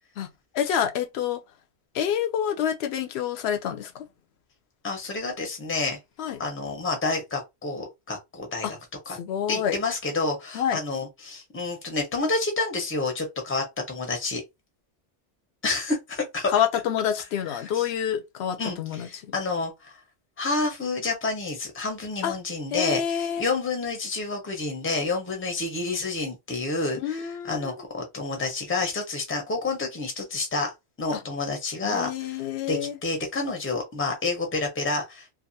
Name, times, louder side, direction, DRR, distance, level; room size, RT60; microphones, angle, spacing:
voice 1, 0.5-1.4 1.9-4.0 6.2-6.4 8.6-8.7 9.2-9.8 10.5-10.8 16.5-19.1 22.2-22.3 22.7-23.5 27.0-27.8 31.1-31.2 31.8-33.0, left 9 dB, 70° left, 0.8 m, -27 dB
voice 2, 4.8-6.0 6.4-8.8 9.1-9.2 9.5-14.4 15.6-16.5 17.6-17.9 18.6-19.9 20.4-30.7 31.0-35.3, left 3 dB, 15° left, 0.7 m, -29 dB
2.7 x 2.5 x 2.6 m
omnidirectional pair, 1.2 m